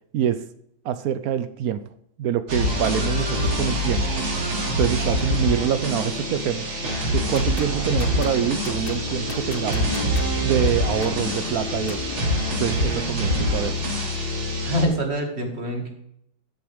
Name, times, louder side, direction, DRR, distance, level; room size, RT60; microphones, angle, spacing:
voice 1, 0.1-0.5 0.8-1.9 2.2-4.1 4.8-6.7 7.1-9.9 10.4-12.1 12.6-13.8, right 9 dB, 90° right, 12 dB, 0.7 m, -25 dB
sound 1, 2.5-14.9, equal, 70° right, 3.3 m, -25 dB
sound 2, 7.2-12.4, left 5 dB, 50° left, 0.7 m, -35 dB
voice 2, 14.6-15.9, equal, 30° right, 2 dB, 2.3 m, -25 dB
13.0 x 8.0 x 3.5 m, 0.74 s
omnidirectional pair, 2.3 m